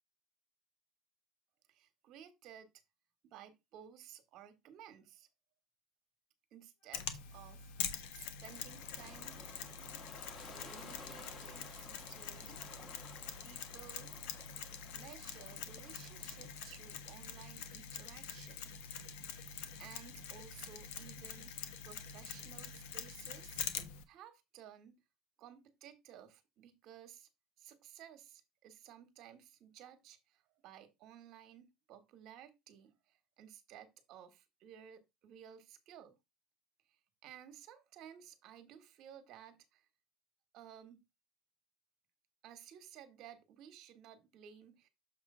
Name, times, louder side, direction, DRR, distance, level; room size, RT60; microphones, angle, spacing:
voice 1, 1.7-2.7 3.3-5.3 6.5-7.7 8.1-9.4 10.4-12.6 13.4-14.1 14.9-18.7 19.4-23.7 24.1-25.0 25.4-27.3 27.6-36.2 36.9-39.8 40.5-41.0 42.4-44.9, right 9 dB, 55° right, 1.4 m, -56 dB
Wind instrument woodwind instrument, 6.8-11.9, left 3 dB, 60° left, 2.7 m, -73 dB
Mechanisms, 6.9-24.0, left 7 dB, 85° left, 1.0 m, -45 dB
Ocean, 8.5-17.3, left 3 dB, 30° left, 1.6 m, -55 dB
7.1 x 3.3 x 5.5 m
cardioid pair, 130°, 0 cm